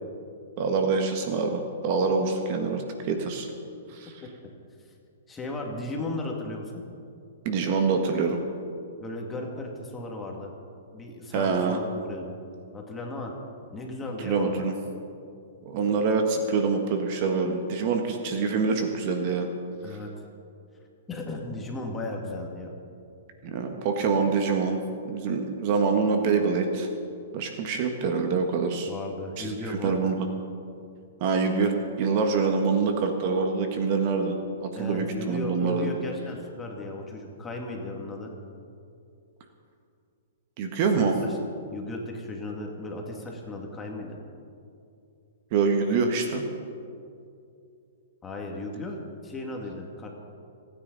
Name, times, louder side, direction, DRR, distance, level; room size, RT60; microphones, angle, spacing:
voice 1, 0.6-3.5 3.9-4.1 7.4-8.4 11.3-11.8 14.2-14.7 15.6-19.5 19.9-20.0 23.5-24.8 25.1-26.9 27.3-28.9 29.4-30.3 31.2-31.7 32.0-35.9 40.6-41.1 45.5-46.4, right 4 dB, 45° right, 4 dB, 1.5 m, -25 dB
voice 2, 5.3-6.8 9.0-10.5 10.9-12.3 12.7-13.3 13.7-14.7 19.8-20.1 21.1-22.8 28.8-30.1 34.7-38.3 41.0-41.4 41.7-44.2 48.2-50.1, left 2 dB, 15° left, 0 dB, 2.4 m, -35 dB
28.0 x 9.9 x 4.1 m, 2.5 s
hypercardioid pair, 140°, 0 cm